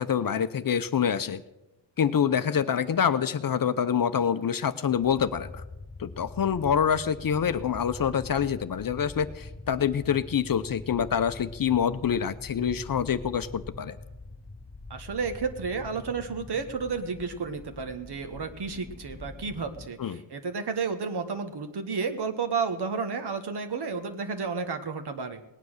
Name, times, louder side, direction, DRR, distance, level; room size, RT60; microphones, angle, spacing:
voice 1, 0.0-1.4 2.0-5.6 6.0-14.0 20.0-20.2, left 8 dB, 45° left, 11 dB, 0.7 m, -26 dB
sound 1, 4.9-19.9, left 2 dB, 25° left, 2.3 m, -44 dB
voice 2, 14.9-25.4, right 5 dB, 55° right, 7 dB, 1.5 m, -32 dB
18.5 x 9.5 x 6.5 m, 0.94 s
wide cardioid pair, 135°, 48 cm